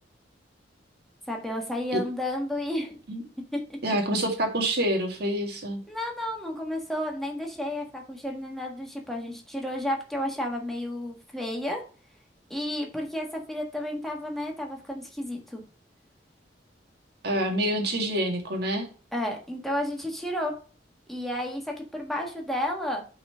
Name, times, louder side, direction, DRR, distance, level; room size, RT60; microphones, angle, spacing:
voice 1, 1.3-3.0 3.5-3.8 5.9-11.8 12.5-15.6 19.1-20.5 21.1-23.0, left 1 dB, ahead, 1 dB, 1.5 m, -32 dB
voice 2, 3.8-5.8 17.2-18.9, right 1 dB, 60° right, 3 dB, 1.9 m, -27 dB
5.6 x 4.1 x 5.6 m, 0.39 s
head